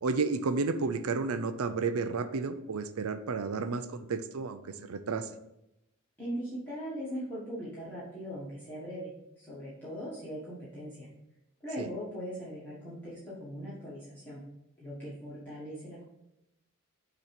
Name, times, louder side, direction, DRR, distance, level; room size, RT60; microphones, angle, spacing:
voice 1, 0.0-5.3 11.8-11.9, right 4 dB, 80° right, 10 dB, 0.5 m, -32 dB
voice 2, 6.2-9.1 9.4-11.1 11.6-14.4 14.8-16.0, equal, 10° left, -11 dB, 1.7 m, -40 dB
6.7 x 3.0 x 5.8 m, 0.88 s
head